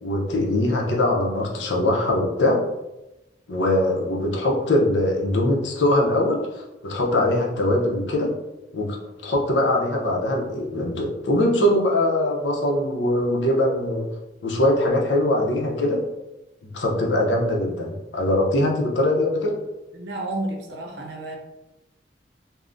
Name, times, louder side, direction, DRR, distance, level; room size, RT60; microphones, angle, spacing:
voice 1, 0.0-2.6 3.5-8.3 8.7-14.1 14.4-16.0 16.6-19.6, left 1 dB, 85° left, -1 dB, 0.6 m, -22 dB
voice 2, 19.9-21.4, right 2 dB, 70° right, 1 dB, 0.6 m, -31 dB
3.5 x 2.1 x 2.5 m, 0.98 s
head